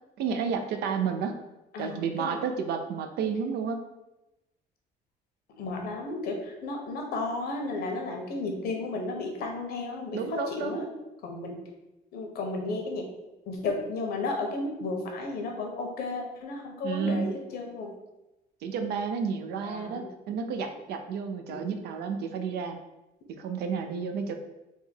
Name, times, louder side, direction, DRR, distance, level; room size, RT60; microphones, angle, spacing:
voice 1, 0.2-1.4 1.8-3.8 10.1-10.9 16.8-17.3 18.6-22.8 23.4-24.3, right 6 dB, 75° right, 6 dB, 0.5 m, -31 dB
voice 2, 1.7-2.4 5.6-10.9 11.2-11.6 12.1-13.1 13.4-17.9 19.6-20.1 21.5-21.7, left 3 dB, 70° left, 2 dB, 0.9 m, -33 dB
3.5 x 2.3 x 4.3 m, 0.99 s
cardioid pair, 110°, 17 cm